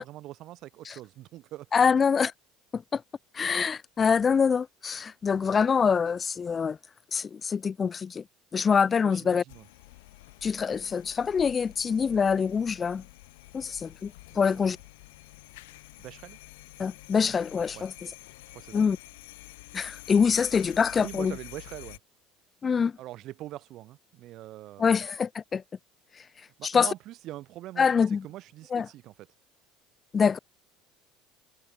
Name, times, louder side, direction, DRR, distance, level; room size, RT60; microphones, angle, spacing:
voice 1, 0.0-1.7 9.0-9.7 14.3-14.7 16.0-16.4 17.7-17.8 18.5-18.8 21.0-22.0 23.0-24.9 26.6-29.1, right 15 dB, 60° right, 2.7 m, -43 dB
voice 2, 1.7-2.3 2.7-3.0 3.3-6.8 7.1-8.2 8.5-9.4 10.4-13.0 13.5-14.8 16.8-18.1 18.7-19.0 19.7-21.3 22.6-22.9 24.8-25.6 26.6-26.9 27.8-28.2 28.7-28.9 30.1-30.4, left 6 dB, 30° left, 0.3 m, -25 dB
sound 1, 9.5-22.0, left 21 dB, 80° left, 3.0 m, -48 dB
hypercardioid pair, 80°, 0 cm